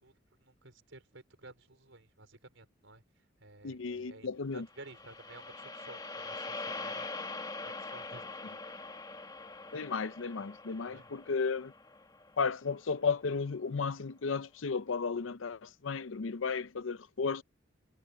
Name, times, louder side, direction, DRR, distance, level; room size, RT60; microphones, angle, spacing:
voice 1, 0.0-3.0 3.4-7.1 7.6-8.7 10.8-11.1, right 2 dB, 80° right, 4.6 m, -54 dB
voice 2, 3.6-4.7 9.7-11.7 12.4-17.4, left 5 dB, 80° left, 0.6 m, -34 dB
sound 1, 4.7-13.0, left 3 dB, 20° left, 1.8 m, -43 dB
head